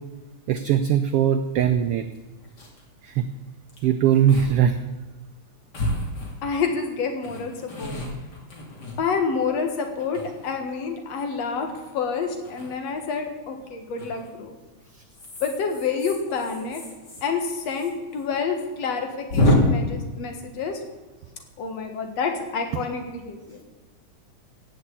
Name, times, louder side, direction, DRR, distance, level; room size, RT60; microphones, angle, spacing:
voice 1, 0.5-2.1 3.0-3.3 3.8-4.8, right 9 dB, 80° right, 8 dB, 1.3 m, -20 dB
sound 1, 1.5-1.7 2.1-2.2 2.4-2.8 3.7-3.9 4.3-4.5 4.8-4.9 5.7-6.7 7.2-9.5 10.0-10.8 12.4-12.7 14.0-14.3 15.1-17.9 18.2-18.3 18.5-18.6 19.3-19.6, equal, 35° left, 3.1 m, -28 dB
voice 2, 6.4-8.0 9.0-14.5 15.4-16.8 17.2-20.8 21.6-23.6, left 5 dB, 60° left, 5 dB, 2.6 m, -28 dB
16.5 x 6.5 x 8.3 m, 1.2 s
omnidirectional pair, 3.3 m